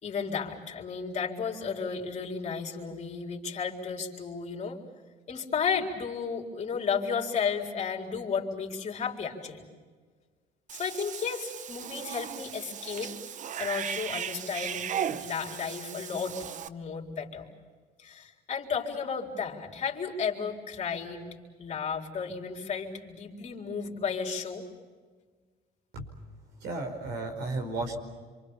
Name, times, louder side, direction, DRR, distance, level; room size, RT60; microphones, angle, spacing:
voice 1, 0.0-4.8 5.3-9.6 10.7-13.1 13.6-16.4 16.7-17.5 18.0-21.3 21.6-24.7, left 6 dB, 40° left, 0 dB, 4.1 m, -33 dB
Cat / Bathtub (filling or washing), 10.7-16.7, right 8 dB, 45° right, 0.9 m, -37 dB
voice 2, 26.6-28.0, right 2 dB, 80° right, 5 dB, 5.0 m, -33 dB
27.0 x 25.5 x 7.3 m, 1.5 s
cardioid pair, 110°, 17 cm